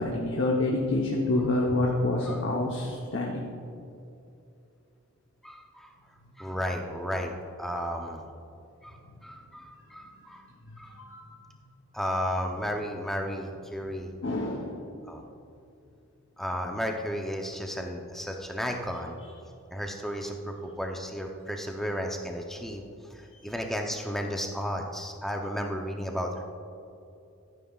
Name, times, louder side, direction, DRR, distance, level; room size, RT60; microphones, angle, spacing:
voice 1, 0.0-3.5 10.7-11.2 14.2-14.8, left 2 dB, 55° left, -2 dB, 1.0 m, -27 dB
voice 2, 5.4-5.9 6.4-7.3 7.6-8.2 8.8-10.4 10.8-11.0 11.9-14.1 15.1-15.2 16.4-19.2 19.7-26.4, equal, ahead, 2 dB, 0.6 m, -33 dB
14.5 x 9.3 x 2.4 m, 2.7 s
head